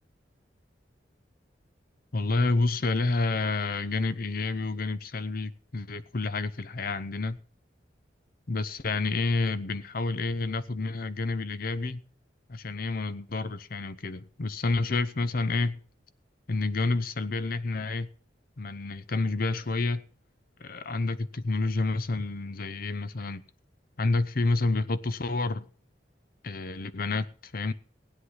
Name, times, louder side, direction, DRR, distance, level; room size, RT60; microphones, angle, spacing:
voice 1, 2.1-7.4 8.5-12.0 12.5-15.8 16.5-18.1 18.6-20.0 20.6-23.4 24.0-25.7 26.4-27.7, left 3 dB, 55° left, 0.8 m, -29 dB
16.5 x 9.8 x 5.6 m
head